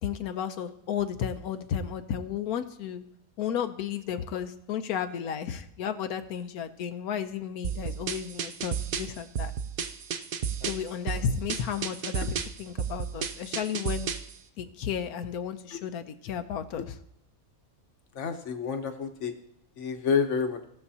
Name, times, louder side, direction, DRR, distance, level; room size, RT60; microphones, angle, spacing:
voice 1, 0.0-3.0 3.4-9.5 10.7-14.1 14.6-16.9, left 8 dB, 85° left, 10 dB, 1.2 m, -33 dB
sound 1, 7.6-14.3, right 7 dB, 60° right, 0.6 m, -33 dB
voice 2, 18.1-19.3 19.8-20.6, left 6 dB, 60° left, 6 dB, 1.2 m, -29 dB
17.0 x 6.8 x 2.8 m, 0.80 s
omnidirectional pair, 1.5 m